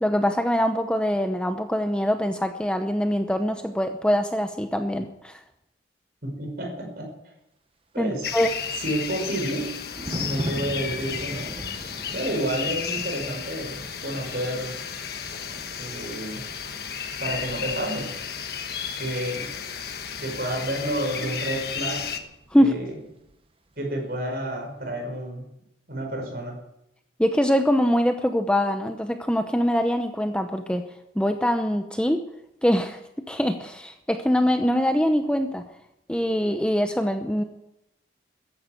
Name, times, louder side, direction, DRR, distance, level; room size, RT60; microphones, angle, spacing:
voice 1, 0.0-5.4 8.0-8.5 22.5-22.8 27.2-30.8 31.1-32.2 32.6-33.0 33.3-35.6 36.1-37.4, equal, 5° left, 6 dB, 0.7 m, -23 dB
voice 2, 6.2-7.1 7.9-8.3 8.8-9.8 10.1-11.6 12.1-13.8 14.0-14.8 15.8-16.5 17.2-18.2 19.0-19.6 20.2-22.2 22.6-22.9 23.8-25.4 25.9-26.6, right 1 dB, 55° right, 2 dB, 5.6 m, -30 dB
sound 1, 8.2-22.2, left 7 dB, 60° left, 1.4 m, -33 dB
Thunder, 8.2-22.8 23.0-23.3, right 1 dB, 30° right, 1.1 m, -41 dB
14.5 x 10.5 x 7.9 m, 0.85 s
head